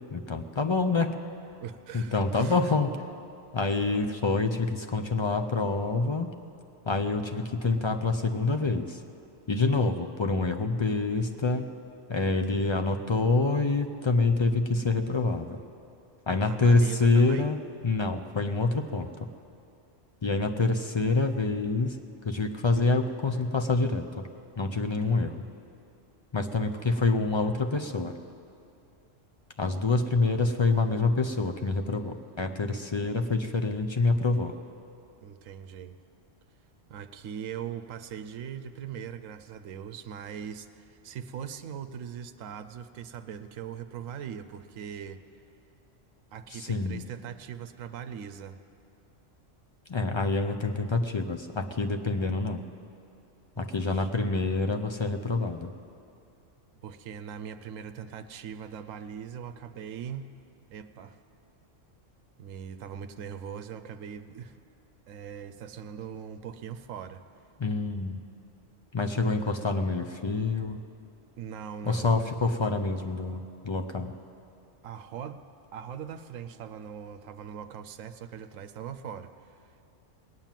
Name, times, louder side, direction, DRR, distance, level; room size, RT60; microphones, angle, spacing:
voice 1, 0.1-1.1 1.9-2.9 3.5-6.3 6.9-9.0 9.5-11.7 12.1-15.6 16.3-17.6 17.8-19.3 20.2-22.0 22.2-24.3 24.6-25.4 26.3-28.1 29.6-34.5 46.5-47.1 49.9-52.6 53.6-55.7 67.6-68.2 68.9-70.8 71.8-74.1, left 3 dB, 50° left, 6 dB, 0.3 m, -26 dB
voice 2, 1.6-2.7 16.4-17.5 24.9-25.2 26.6-26.9 35.2-36.0 36.9-45.2 46.3-48.6 53.6-54.1 56.7-60.3 60.7-61.2 62.4-64.6 65.1-67.2 69.2-69.5 71.4-72.2 74.8-75.4 75.7-79.8, right 8 dB, 85° right, 10 dB, 1.0 m, -41 dB
19.5 x 9.1 x 7.3 m, 2.6 s
omnidirectional pair, 1.3 m